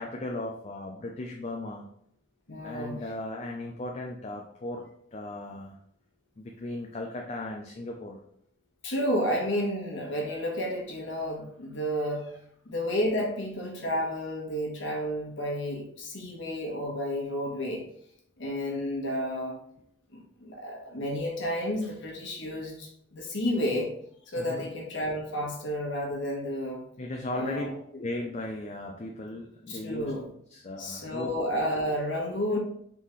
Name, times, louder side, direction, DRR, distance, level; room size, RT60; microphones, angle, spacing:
voice 1, 0.0-1.8 2.6-4.9 5.1-5.8 6.4-8.2 24.4-24.7 27.0-27.7 28.0-30.1 30.5-31.3, left 1 dB, 35° left, 1 dB, 0.4 m, -36 dB
voice 2, 2.5-3.0 8.8-12.3 12.6-17.8 18.4-19.6 20.1-23.9 24.3-26.8 27.3-27.7 29.7-30.3 30.8-32.6, equal, 70° left, -1 dB, 1.2 m, -31 dB
4.0 x 3.6 x 3.1 m, 0.68 s
head